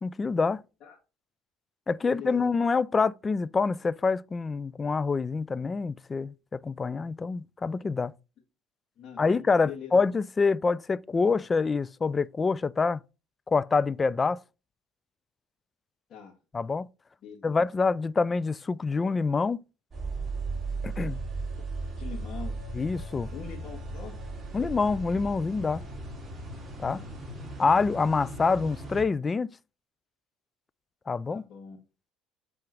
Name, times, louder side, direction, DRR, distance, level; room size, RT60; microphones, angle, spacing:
voice 1, 0.0-0.6 1.9-8.1 9.2-13.0 13.5-14.4 16.5-16.9 17.4-19.6 20.8-21.2 22.7-23.3 24.5-25.8 26.8-27.0 27.6-29.5 31.1-31.4, left 4 dB, 25° left, 0.3 m, -26 dB
voice 2, 2.1-2.7 9.0-9.9 11.2-11.3 16.1-16.3 17.2-17.6 22.0-22.5 23.3-24.1 26.9-27.1 31.3-31.8, left 8 dB, 50° left, 1.9 m, -43 dB
sound 1, 19.9-29.0, right 3 dB, 20° right, 2.9 m, -37 dB
7.5 x 3.6 x 4.5 m
supercardioid pair, 100°, 0 cm